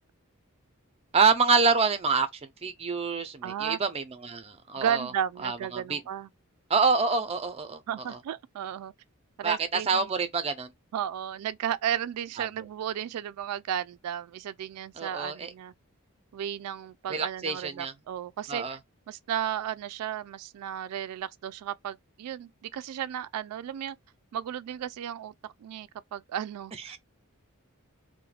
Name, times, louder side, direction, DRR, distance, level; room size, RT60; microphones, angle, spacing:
voice 1, 1.1-5.1 5.4-6.0 6.7-7.8 8.1-8.2 9.4-10.7 12.4-12.5 15.0-15.5 17.1-17.9 18.5-18.8 26.9-27.0, right 4 dB, 25° right, 0.4 m, -27 dB
voice 2, 3.4-3.8 4.8-6.3 7.9-8.9 9.4-10.1 10.9-15.7 16.3-18.8 19.1-24.0 24.3-27.0, right 9 dB, 90° right, 0.3 m, -34 dB
2.3 x 2.1 x 3.1 m
head